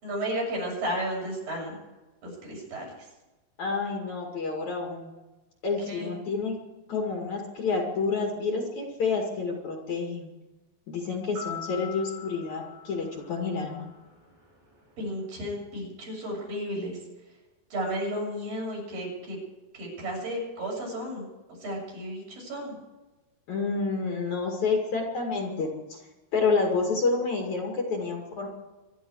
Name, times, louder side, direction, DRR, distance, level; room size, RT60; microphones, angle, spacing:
voice 1, 0.0-1.8 2.2-2.9 5.9-6.1 15.0-17.0 17.7-19.4 19.7-21.2 21.6-22.8, equal, 55° right, -3 dB, 8.6 m, -33 dB
voice 2, 3.6-5.1 5.6-6.6 6.9-10.3 10.9-13.9 23.5-26.0 26.3-28.5, left 4 dB, 50° left, 0 dB, 3.2 m, -29 dB
sound 1, 11.4-13.9, left 7 dB, 80° right, 8.2 m, -42 dB
25.5 x 11.5 x 4.8 m, 1.1 s
omnidirectional pair, 4.9 m